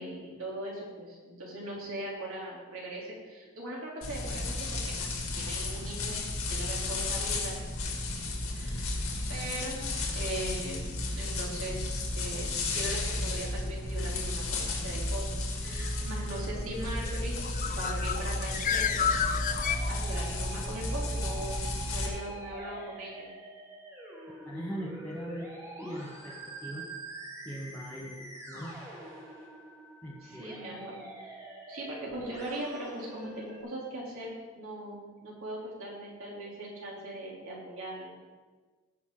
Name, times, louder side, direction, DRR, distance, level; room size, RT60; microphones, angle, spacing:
voice 1, 0.0-5.1 5.4-6.2 6.5-7.7 8.5-8.9 9.3-15.2 15.6-19.1 19.9-23.3 30.2-31.3 31.7-38.1, right 1 dB, 70° right, -4 dB, 3.1 m, -40 dB
sound 1, 4.0-22.1, left 2 dB, 75° left, 2.2 m, -33 dB
Musical instrument, 15.6-33.6, right 1 dB, 15° right, 1.6 m, -46 dB
Bird, 17.4-20.4, left 7 dB, 35° left, 0.4 m, -31 dB
voice 2, 24.5-25.5 25.8-26.9 27.4-29.5 30.0-30.8, right 1 dB, 10° left, -6 dB, 0.9 m, -41 dB
16.5 x 6.1 x 3.8 m, 1.4 s
head